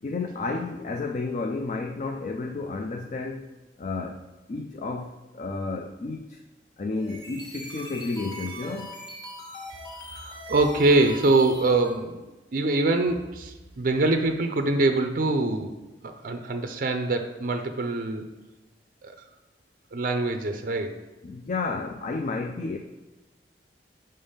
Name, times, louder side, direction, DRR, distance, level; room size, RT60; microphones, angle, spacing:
voice 1, 0.0-3.5 3.8-6.4 6.8-8.9 21.2-22.8, left 3 dB, 45° left, 3 dB, 0.4 m, -31 dB
sound 1, 6.9-12.0, equal, 25° left, 1.5 m, -41 dB
voice 2, 10.1-12.3 12.5-15.7 16.0-18.3 19.0-19.2 19.9-21.0, right 2 dB, 50° right, 6 dB, 0.5 m, -24 dB
5.4 x 3.5 x 5.5 m, 1.1 s
head